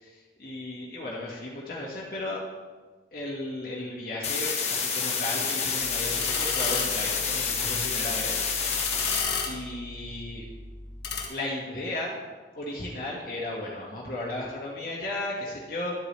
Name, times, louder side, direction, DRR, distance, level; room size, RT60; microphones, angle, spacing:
voice 1, 0.0-2.4 3.1-8.4 8.7-10.4 11.3-12.2 12.5-15.9, left 1 dB, 55° left, -5 dB, 1.7 m, -35 dB
sound 1, 4.2-9.2, left 5 dB, 40° left, 1.2 m, -28 dB
sound 2, 5.9-11.3, left 5 dB, 80° left, 1.6 m, -34 dB
11.5 x 8.3 x 3.3 m, 1.4 s
head